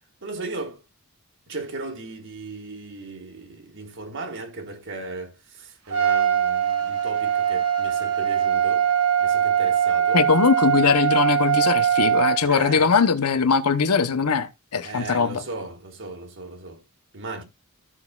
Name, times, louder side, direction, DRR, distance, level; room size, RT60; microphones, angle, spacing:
voice 1, 0.2-0.8 1.5-8.9 9.2-10.3 12.5-13.0 14.8-16.8 17.1-17.4, right 3 dB, 60° right, 1.8 m, -36 dB
Trumpet, 5.9-12.4, right 8 dB, 85° right, 2.1 m, -21 dB
voice 2, 10.1-15.4, left 5 dB, 90° left, 0.9 m, -21 dB
15.0 x 6.0 x 2.4 m
head